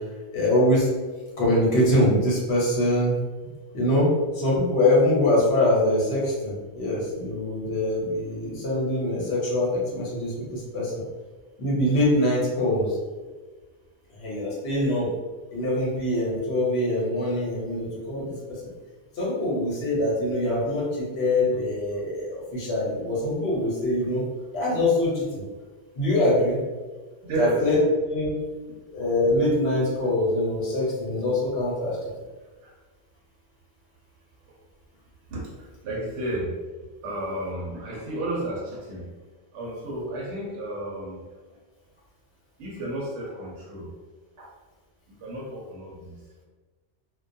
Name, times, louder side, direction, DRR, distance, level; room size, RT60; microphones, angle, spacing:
voice 1, 0.3-0.9 1.4-3.2 3.7-4.1 4.3-11.0 11.6-13.0 14.2-15.1 15.5-18.6 19.1-24.2 24.5-25.4 25.9-26.6 27.4-27.8 28.1-28.4 28.9-32.0, left 1 dB, 65° left, -5 dB, 1.0 m, -24 dB
voice 2, 27.2-27.7 32.6-32.7 35.3-36.5 37.0-39.1 39.5-41.2 42.6-43.9 44.4-44.5 45.1-46.1, right 1 dB, 75° right, -4 dB, 0.9 m, -32 dB
2.3 x 2.2 x 2.5 m, 1.3 s
omnidirectional pair, 1.2 m